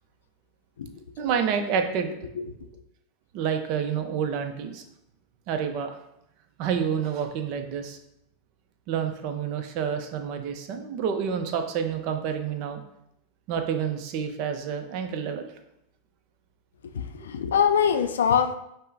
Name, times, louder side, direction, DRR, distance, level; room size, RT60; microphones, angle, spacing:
voice 1, 1.2-2.2 2.6-2.7 3.3-4.8 5.5-6.0 6.6-8.0 8.9-12.8 13.5-15.5, right 7 dB, 55° right, 6 dB, 0.6 m, -28 dB
voice 2, 16.8-18.5, left 7 dB, 85° left, 8 dB, 0.4 m, -23 dB
5.4 x 2.1 x 4.0 m, 0.80 s
hypercardioid pair, 105°, 0 cm